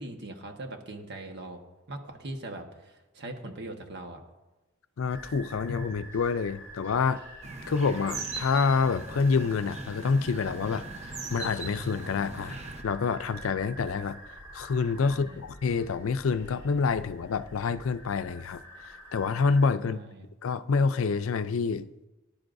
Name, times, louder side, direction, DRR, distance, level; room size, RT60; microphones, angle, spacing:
voice 1, 0.0-1.6 1.9-4.2 15.0-15.5 19.8-20.3, right 2 dB, 55° right, 1.3 m, -41 dB
voice 2, 5.0-7.2 7.7-10.9 11.3-12.6 12.8-14.2 14.5-20.0 20.4-21.9, left 5 dB, 70° left, 0.5 m, -27 dB
sound 1, 5.1-19.7, right 1 dB, 15° right, 3.4 m, -47 dB
sound 2, 7.4-12.8, right 3 dB, 35° right, 0.9 m, -40 dB
18.5 x 10.5 x 2.6 m
head